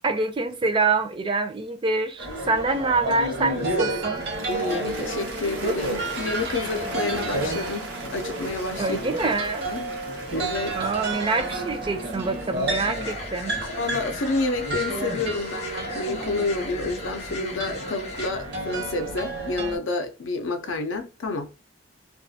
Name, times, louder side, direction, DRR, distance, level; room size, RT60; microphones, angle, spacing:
voice 1, 0.0-4.3 8.8-9.7 10.7-13.5, right 3 dB, 25° right, 0.4 m, -25 dB
sound 1, 2.2-19.8, right 2 dB, 55° right, 0.8 m, -31 dB
Cheering / Applause, 3.9-16.1, right 2 dB, 85° right, 0.9 m, -41 dB
voice 2, 4.5-9.0 9.7-9.8 10.3-10.8 13.8-21.5, left 3 dB, 90° left, 0.5 m, -29 dB
sound 2, 12.8-18.3, left 3 dB, 35° left, 0.5 m, -38 dB
2.3 x 2.3 x 2.6 m
head